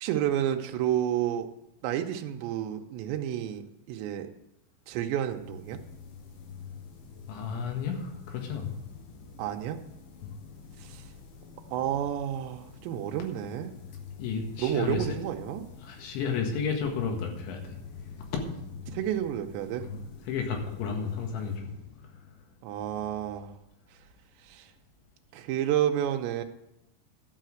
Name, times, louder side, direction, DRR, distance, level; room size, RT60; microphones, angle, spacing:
voice 1, 0.0-1.5 1.8-3.6 3.9-4.3 4.9-5.8 9.4-9.8 10.8-11.0 11.7-13.7 14.6-15.6 18.9-19.9 22.6-23.5 24.5-24.7 25.3-26.4, right 11 dB, 85° right, 5 dB, 2.9 m, -30 dB
sound 1, 5.2-22.8, left 6 dB, 65° left, 2.6 m, -47 dB
voice 2, 7.3-8.7 10.2-10.3 14.2-15.1 15.8-17.8 18.3-18.4 19.8-20.0 20.3-21.7 22.8-23.0, left 6 dB, 85° left, 2 dB, 4.0 m, -32 dB
12.5 x 5.8 x 7.7 m, 0.87 s
omnidirectional pair, 5.2 m